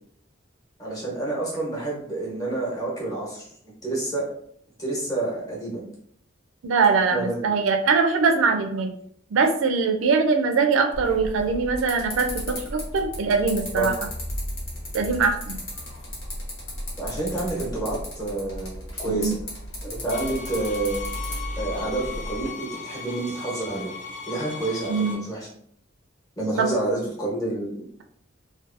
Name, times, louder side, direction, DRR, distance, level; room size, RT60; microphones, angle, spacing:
voice 1, 0.8-3.5 3.8-4.2 4.8-5.8 7.1-7.4 13.8-13.9 16.9-19.4 19.8-23.9 24.3-25.5 26.4-27.7, right 2 dB, 20° left, -4 dB, 0.8 m, -29 dB
voice 2, 6.6-8.9 9.3-13.9 14.9-15.6 19.1-19.3 24.9-25.3 26.6-26.7, right 4 dB, 80° right, 5 dB, 0.4 m, -22 dB
sound 1, 10.9-22.5, equal, 65° left, 1.0 m, -35 dB
sound 2, 20.1-25.2, left 5 dB, 40° left, 0.5 m, -37 dB
2.6 x 2.2 x 2.4 m, 0.65 s
head